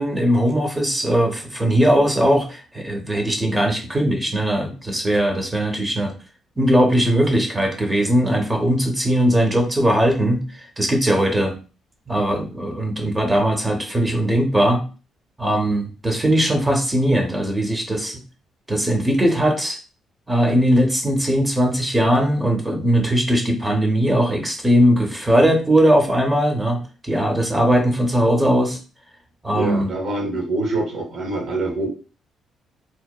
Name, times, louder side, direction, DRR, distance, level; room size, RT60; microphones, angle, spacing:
voice 1, 0.0-6.1 6.6-10.4 10.8-11.6 12.1-14.8 15.4-18.2 18.7-19.8 20.3-28.8 29.4-29.9, equal, 15° right, 3 dB, 0.7 m, -19 dB
voice 2, 29.5-31.9, right 2 dB, 60° right, 1 dB, 0.9 m, -25 dB
2.8 x 2.0 x 2.3 m, 0.34 s
cardioid pair, 90°, 0 cm